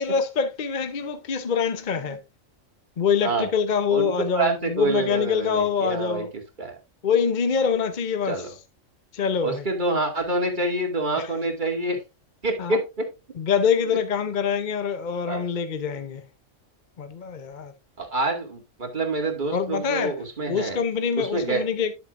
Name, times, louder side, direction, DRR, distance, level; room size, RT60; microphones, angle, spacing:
voice 1, 0.0-2.2 3.0-6.3 7.0-8.5 9.1-9.6 11.2-11.3 12.6-12.8 13.4-16.2 17.0-17.7 19.5-20.2 20.5-21.9, left 6 dB, 45° left, 0.8 m, -25 dB
voice 2, 3.9-6.3 6.6-6.8 8.3-8.5 9.4-12.0 12.4-13.1 15.2-15.5 18.0-20.8 21.2-21.6, right 2 dB, 35° right, 2.3 m, -27 dB
10.5 x 8.4 x 2.5 m
omnidirectional pair, 1.4 m